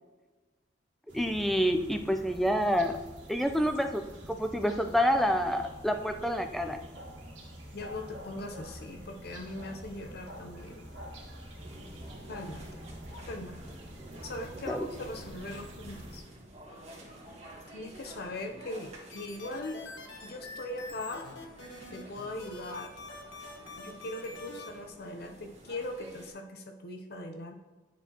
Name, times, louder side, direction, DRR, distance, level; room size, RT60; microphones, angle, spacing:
voice 1, 1.1-3.0 3.3-6.8 14.7-14.9, equal, ahead, 6 dB, 0.4 m, -28 dB
sound 1, 1.1-16.2, equal, 85° right, 1.8 m, -46 dB
voice 2, 7.7-10.8 12.3-12.6 13.3-13.5 14.2-16.2 17.7-19.8 20.2-21.2 21.9-22.9 23.8-27.5, left 1 dB, 55° left, 4 dB, 0.6 m, -40 dB
sound 2, 11.6-26.3, right 1 dB, 35° right, 1.6 m, -50 dB
sound 3, 19.1-24.7, left 3 dB, 75° left, 1.1 m, -45 dB
10.0 x 4.4 x 2.9 m, 1.2 s
head